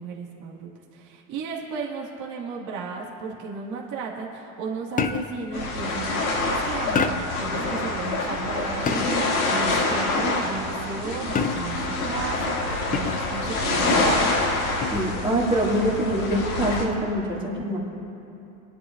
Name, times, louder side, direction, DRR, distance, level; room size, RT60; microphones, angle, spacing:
voice 1, 0.0-14.1, right 5 dB, 45° right, -3 dB, 2.1 m, -34 dB
sound 1, 5.0-5.5 7.0-7.5 8.9-9.4 11.4-11.9 12.9-13.4 14.8-15.2, left 5 dB, 20° left, 0.6 m, -27 dB
sound 2, 5.5-16.8, left 2 dB, 85° left, 2.6 m, -26 dB
voice 2, 14.9-17.8, right 1 dB, 10° right, -3 dB, 2.4 m, -24 dB
23.5 x 10.5 x 2.6 m, 2.8 s
hypercardioid pair, 95°, 42 cm